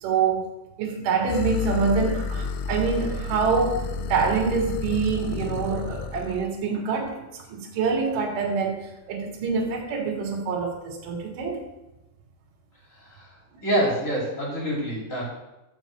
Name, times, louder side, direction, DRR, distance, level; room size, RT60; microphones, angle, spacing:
voice 1, 0.0-0.5 0.8-11.7, right 5 dB, 55° right, -1 dB, 3.2 m, -26 dB
sound 1, 1.3-6.5, left 5 dB, 85° left, 3.1 m, -31 dB
voice 2, 13.0-13.3 13.6-15.2, equal, 20° left, -3 dB, 2.4 m, -26 dB
12.5 x 4.8 x 7.7 m, 0.98 s
omnidirectional pair, 5.5 m